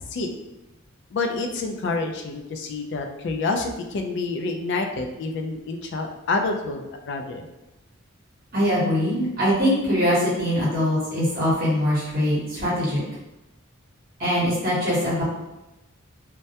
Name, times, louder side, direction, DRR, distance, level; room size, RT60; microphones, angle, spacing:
voice 1, 1.1-7.5, left 3 dB, 55° left, 4 dB, 0.3 m, -28 dB
voice 2, 8.5-13.0 14.2-15.2, equal, 45° right, -7 dB, 0.9 m, -22 dB
2.2 x 2.1 x 2.7 m, 0.99 s
head